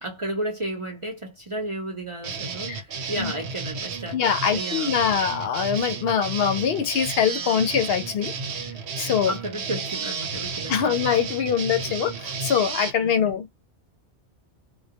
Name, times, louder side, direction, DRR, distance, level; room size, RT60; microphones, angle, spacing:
voice 1, 0.0-4.9 9.2-11.0 13.0-13.4, right 1 dB, 35° right, 0.5 m, -33 dB
sound 1, 2.2-12.9, right 5 dB, 80° right, 1.0 m, -32 dB
voice 2, 4.1-8.3 9.0-9.3 10.7-13.6, left 8 dB, 70° left, 0.8 m, -23 dB
2.2 x 2.1 x 2.7 m
omnidirectional pair, 1.1 m